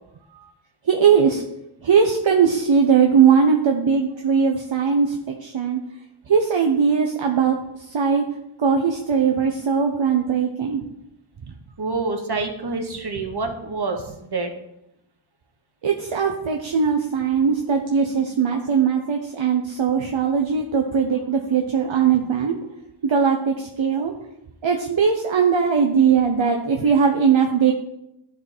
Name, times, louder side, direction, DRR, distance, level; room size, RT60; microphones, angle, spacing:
voice 1, 0.9-1.4 1.8-5.8 6.3-7.6 7.8-8.2 8.6-10.8 15.8-22.6 23.0-24.1 24.6-27.7, right 6 dB, 70° right, 2 dB, 0.7 m, -19 dB
voice 2, 11.8-14.5, right 3 dB, 55° right, 4 dB, 1.2 m, -27 dB
11.0 x 3.8 x 4.3 m, 0.84 s
wide cardioid pair, 50°, 49 cm